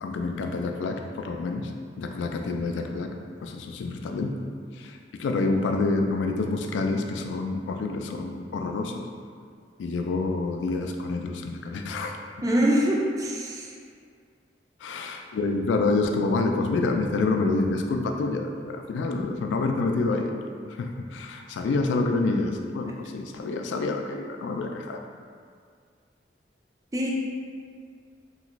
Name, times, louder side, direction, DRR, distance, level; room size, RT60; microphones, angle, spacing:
voice 1, 0.0-1.7 2.0-3.1 3.4-4.4 4.7-9.0 9.8-12.2 14.8-20.3 20.7-25.0, left 3 dB, 90° left, 4 dB, 0.3 m, -27 dB
voice 2, 12.4-13.7 26.9-27.1, equal, 20° right, -2 dB, 0.3 m, -24 dB
3.0 x 2.4 x 3.0 m, 2.1 s
head